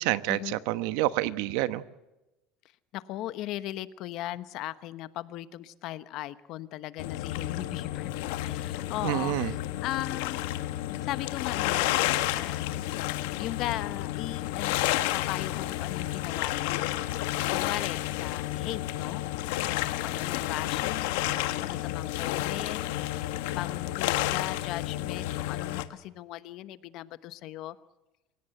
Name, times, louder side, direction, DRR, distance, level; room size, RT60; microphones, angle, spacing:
voice 1, 0.0-1.8 9.0-9.5, right 16 dB, 70° right, 13 dB, 1.1 m, -28 dB
voice 2, 2.9-8.1 8.4-10.4 11.0-12.0 12.3-13.0 13.4-16.8 17.5-19.3 19.6-22.8 23.1-23.3 23.6-27.8, left 14 dB, 50° left, 14 dB, 1.0 m, -38 dB
sound 1, 7.0-25.8, left 15 dB, 85° left, 1.5 m, -31 dB
28.0 x 17.0 x 7.9 m, 1.0 s
cardioid pair, 160°, 0 cm